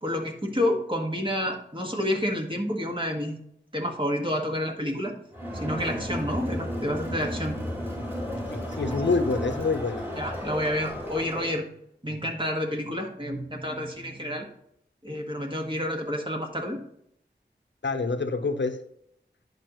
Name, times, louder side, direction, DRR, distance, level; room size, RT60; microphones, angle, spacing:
voice 1, 0.0-3.4 3.7-5.1 5.5-7.6 10.2-11.6 12.0-14.5 15.0-16.8, left 1 dB, 25° right, 1 dB, 1.6 m, -29 dB
Crowd, 5.3-11.6, equal, 10° right, 2.6 m, -33 dB
voice 2, 8.5-10.0 17.8-18.8, left 3 dB, 80° left, 8 dB, 0.7 m, -26 dB
10.5 x 5.4 x 3.0 m, 0.73 s
wide cardioid pair, 50°, 18 cm